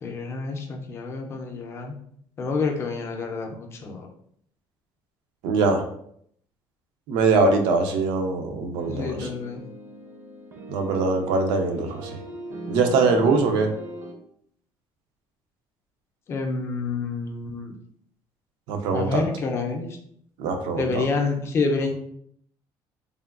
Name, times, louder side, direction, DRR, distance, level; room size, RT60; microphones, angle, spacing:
voice 1, 0.0-2.0 2.4-4.1 8.9-9.6 16.3-17.7 18.9-20.0 20.8-21.9, left 4 dB, 35° left, 3 dB, 0.4 m, -28 dB
voice 2, 5.4-5.8 7.1-9.3 10.7-12.2 12.7-13.7 18.7-19.2 20.4-21.0, right 3 dB, 90° right, 4 dB, 0.5 m, -22 dB
sound 1, 8.8-14.1, equal, 30° right, 0.5 m, -39 dB
3.3 x 2.2 x 2.4 m, 0.67 s
cardioid pair, 160°, 8 cm